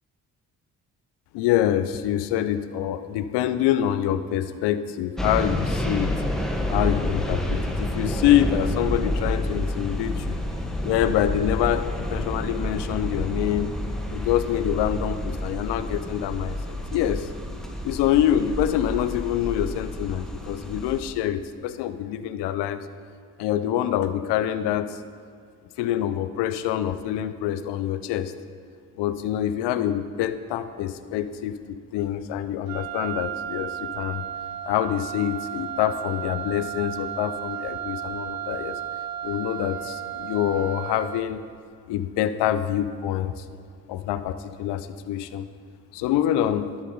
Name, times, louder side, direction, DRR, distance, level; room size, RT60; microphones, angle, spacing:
voice 1, 1.3-6.1 6.7-10.4 10.8-13.7 14.1-17.3 17.8-22.9 23.4-25.0 25.8-28.3 29.0-34.2 34.6-38.8 39.2-41.4 41.9-43.4 43.9-45.5 45.9-46.7, left 11 dB, 70° left, 12 dB, 0.6 m, -26 dB
sound 1, 5.2-21.0, left 1 dB, ahead, 1.2 m, -29 dB
Wind instrument woodwind instrument, 32.7-41.4, right 11 dB, 55° right, 0.6 m, -34 dB
10.5 x 6.6 x 3.9 m, 2.2 s
hypercardioid pair, 40°, 43 cm